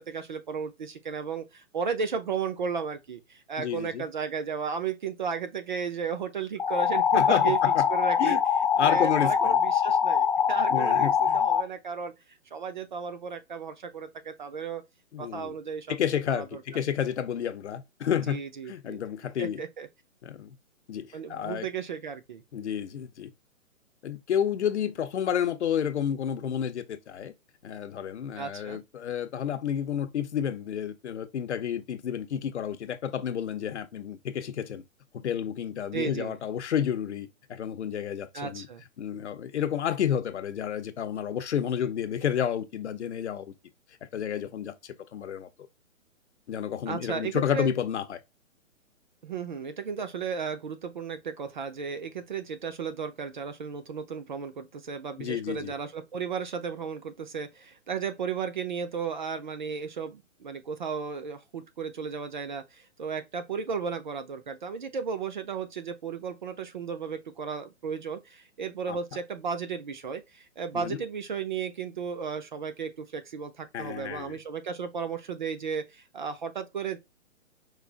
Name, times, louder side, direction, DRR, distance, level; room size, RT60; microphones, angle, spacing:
voice 1, 0.0-7.6 7.9-8.4 8.8-12.1 12.5-14.8 15.2-16.0 16.3-16.6 18.3-19.0 19.4-19.9 21.1-22.4 28.4-28.8 35.9-36.3 38.3-38.8 46.9-47.7 49.2-77.0, right 6 dB, 35° right, 0.5 m, -34 dB
voice 2, 3.6-4.0 7.1-7.9 8.2-8.4 8.8-9.6 10.7-11.4 15.1-15.5 15.9-18.4 18.7-19.6 20.2-20.5 20.9-21.7 22.5-23.3 24.0-27.3 27.6-34.8 35.1-38.7 39.0-43.5 44.1-45.5 46.5-48.2 55.2-55.7 68.9-69.0 70.7-71.0 73.7-74.4, left 9 dB, 55° left, 0.8 m, -30 dB
sound 1, 6.6-11.6, left 7 dB, 35° left, 0.4 m, -23 dB
4.7 x 2.5 x 3.9 m
hypercardioid pair, 155°, 41 cm